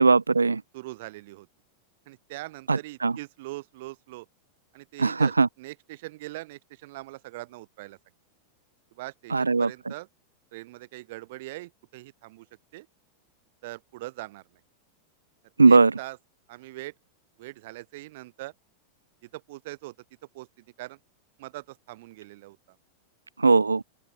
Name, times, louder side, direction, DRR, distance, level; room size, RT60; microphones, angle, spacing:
voice 1, 0.0-0.6 2.7-3.1 5.0-5.5 9.3-9.7 15.6-15.9 23.4-23.8, right 4 dB, 80° right, 0.4 m, -19 dB
voice 2, 0.7-1.5 2.1-4.3 4.7-8.0 8.9-10.1 10.5-12.5 12.7-12.9 13.6-14.6 15.7-16.2 16.5-16.9 17.4-18.5 19.2-19.9 20.3-21.0 21.4-22.8, right 19 dB, 50° right, 2.7 m, -41 dB
open air
figure-of-eight pair, 90°, 0 cm